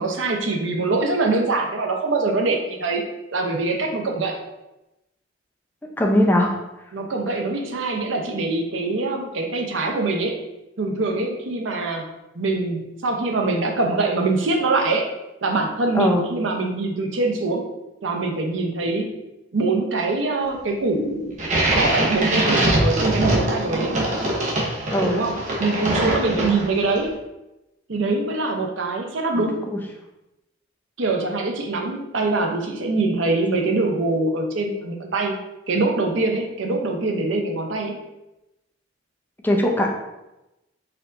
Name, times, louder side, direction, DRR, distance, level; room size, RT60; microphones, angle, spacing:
voice 1, 0.0-3.0 3.3-4.4 6.9-10.4 10.8-12.1 12.4-15.1 15.4-17.7 18.0-19.2 19.5-21.4 21.7-23.9 25.1-27.1 27.9-29.7 31.0-35.4 35.7-38.0, right 3 dB, 75° right, 2 dB, 0.7 m, -23 dB
voice 2, 6.0-6.5 15.9-16.3 24.9-25.2 29.4-29.8 39.4-40.0, left 1 dB, 10° left, 0 dB, 0.6 m, -20 dB
sound 1, 21.4-26.9, right 1 dB, 40° right, 0.9 m, -22 dB
4.3 x 4.0 x 2.6 m, 0.95 s
head